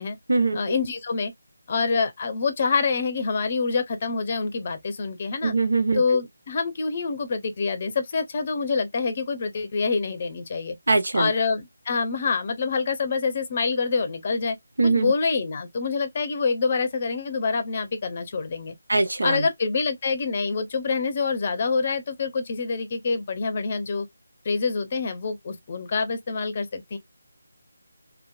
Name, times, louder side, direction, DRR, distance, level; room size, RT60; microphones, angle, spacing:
voice 1, 0.5-1.3 1.7-5.5 6.0-10.8 11.1-14.6 14.8-18.7 19.2-24.1 24.4-27.0, left 4 dB, 35° left, 0.6 m, -26 dB
voice 2, 5.4-6.0 10.9-11.3 14.8-15.1 18.9-19.5, right 3 dB, 70° right, 0.8 m, -22 dB
2.9 x 2.1 x 2.3 m
figure-of-eight pair, 155°, 0 cm